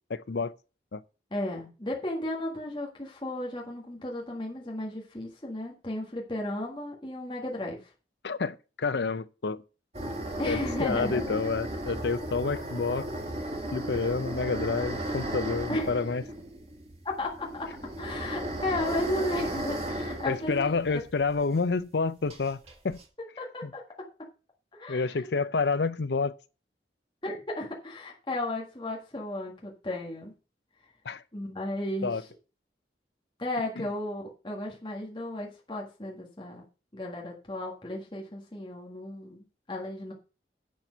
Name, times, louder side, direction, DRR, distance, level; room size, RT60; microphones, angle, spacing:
voice 1, 0.1-0.5 0.9-1.0 8.2-9.6 10.5-13.1 13.7-16.2 20.2-22.6 22.8-23.0 23.6-23.7 24.9-26.3 31.0-31.2 32.0-32.2 33.8-33.9, left 4 dB, 75° left, 0.6 m, -29 dB
voice 2, 1.3-7.9 10.4-11.2 15.7-16.0 17.2-17.7 18.0-21.0 23.4-23.8 24.7-25.3 27.2-30.3 31.3-32.2 33.4-36.6 36.9-40.1, left 1 dB, 25° left, 1.7 m, -34 dB
sound 1, 9.9-21.4 21.6-21.7 22.3-23.0, right 1 dB, 35° right, 2.1 m, -35 dB
10.5 x 4.5 x 6.7 m
head